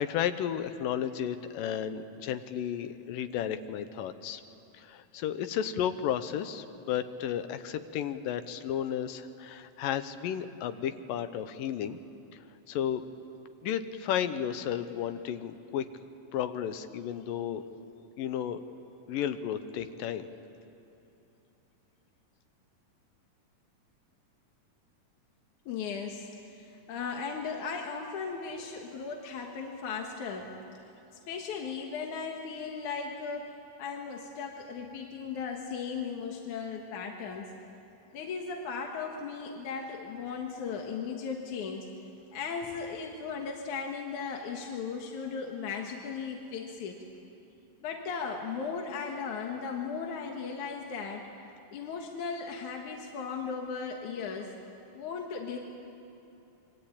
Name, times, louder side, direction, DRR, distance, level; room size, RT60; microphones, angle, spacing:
voice 1, 0.0-4.4 4.7-12.0 12.7-13.0 13.6-15.9 16.3-17.6 18.2-18.6 19.1-20.3, left 9 dB, 85° left, 10 dB, 2.7 m, -33 dB
voice 2, 25.7-30.5 31.3-37.5 38.1-41.9 42.3-47.0 47.8-51.2 51.7-54.5 54.9-55.6, left 5 dB, 65° left, 2 dB, 2.8 m, -37 dB
26.5 x 23.0 x 8.7 m, 2.9 s
omnidirectional pair, 3.8 m